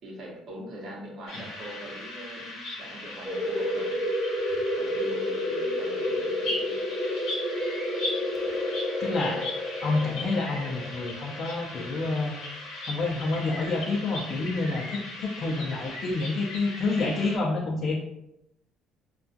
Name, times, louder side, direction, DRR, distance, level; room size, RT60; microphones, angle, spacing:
voice 1, 0.0-4.0 4.8-6.8, right 1 dB, 60° right, -1 dB, 0.7 m, -42 dB
sound 1, 1.3-17.4, left 1 dB, 85° left, 0.7 m, -38 dB
sound 2, 3.3-12.6, left 1 dB, 5° right, 0.7 m, -30 dB
voice 2, 9.0-9.4 9.8-12.3 12.8-18.0, left 3 dB, 55° left, -2 dB, 0.4 m, -28 dB
2.3 x 2.2 x 2.5 m, 0.82 s
cardioid pair, 100°, 0 cm